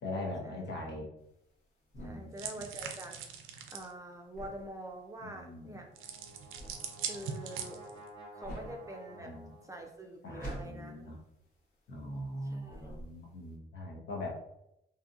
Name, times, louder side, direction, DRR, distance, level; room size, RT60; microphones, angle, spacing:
voice 1, 0.0-1.1 1.9-2.7 5.2-5.8 8.6-8.7 9.2-9.6 10.2-11.2 11.9-14.4, left 1 dB, 60° left, -1 dB, 0.8 m, -41 dB
sound 1, 1.2-12.4 12.6-13.5, equal, 75° left, 1.3 m, -48 dB
voice 2, 2.0-3.2 3.7-5.9 7.1-7.8 8.3-9.4 9.6-11.1 12.4-13.1, right 1 dB, 15° right, 2 dB, 0.4 m, -45 dB
sound 2, 2.4-3.9 6.0-8.1, right 7 dB, 85° right, 0.4 m, -41 dB
Brass instrument, 5.6-9.9, right 1 dB, 25° left, 1.2 m, -52 dB
2.7 x 2.6 x 2.4 m, 0.81 s
cardioid pair, 90°, 20 cm